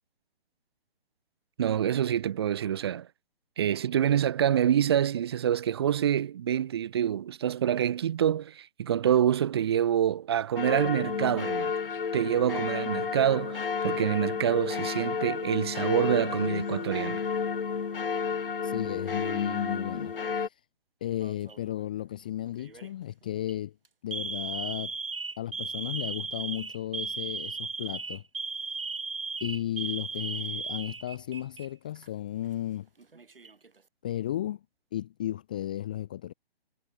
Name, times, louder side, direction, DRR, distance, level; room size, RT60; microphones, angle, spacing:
voice 1, 1.6-3.1 3.6-11.7 12.1-17.2, right 10 dB, 25° right, 0.9 m, -26 dB
sound 1, 10.6-20.5, left 6 dB, 60° left, 0.9 m, -31 dB
voice 2, 18.6-20.1 20.4-20.5 21.0-23.7 24.0-24.9 25.4-28.2 29.4-32.9 34.0-34.6 34.9-36.3, left 12 dB, 10° left, 0.5 m, -34 dB
Alarm, 21.2-21.7 22.6-22.9 23.3-23.5 24.1-31.7 32.0-32.1 33.0-33.7, right 4 dB, 60° right, 3.9 m, -36 dB
figure-of-eight pair, 140°, 31 cm